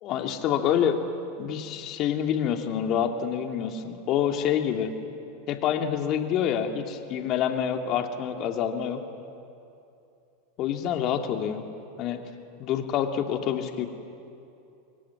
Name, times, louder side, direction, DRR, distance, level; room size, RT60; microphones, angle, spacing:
voice 1, 0.0-1.0 1.4-4.9 5.5-9.0 10.6-11.7 12.0-12.2 12.6-13.9, left 9 dB, 45° left, 5 dB, 2.8 m, -27 dB
26.0 x 22.5 x 10.0 m, 2.7 s
hypercardioid pair, 95°, 0 cm